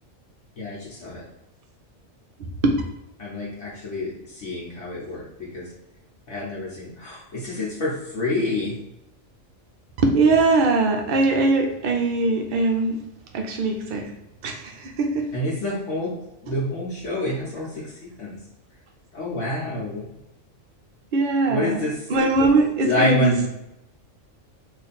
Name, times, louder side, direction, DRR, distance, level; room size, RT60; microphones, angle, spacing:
voice 1, 0.6-1.2 3.2-5.2 5.5-5.6 6.3-8.8 15.3-16.1 16.4-17.7 18.2-18.4 19.1-20.0 21.5-22.0 22.8-23.5, left 1 dB, 70° left, -6 dB, 1.2 m, -27 dB
voice 2, 10.0-13.0 13.3-14.1 14.4-15.3 21.1-23.5, right 3 dB, 65° right, 2 dB, 0.5 m, -21 dB
2.8 x 2.5 x 4.0 m, 0.88 s
omnidirectional pair, 1.4 m